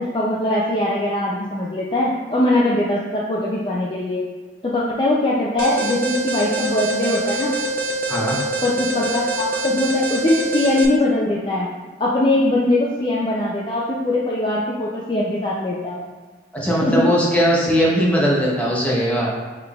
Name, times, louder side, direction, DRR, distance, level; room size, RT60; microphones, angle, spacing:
voice 1, 0.0-4.2 4.6-7.5 8.6-11.7 12.0-16.0 16.8-17.1, left 1 dB, 25° left, -5 dB, 0.4 m, -21 dB
Alarm, 5.6-10.9, right 1 dB, 50° right, 0.4 m, -25 dB
voice 2, 16.5-19.3, equal, 10° left, -5 dB, 0.7 m, -19 dB
5.7 x 3.3 x 2.3 m, 1.4 s
head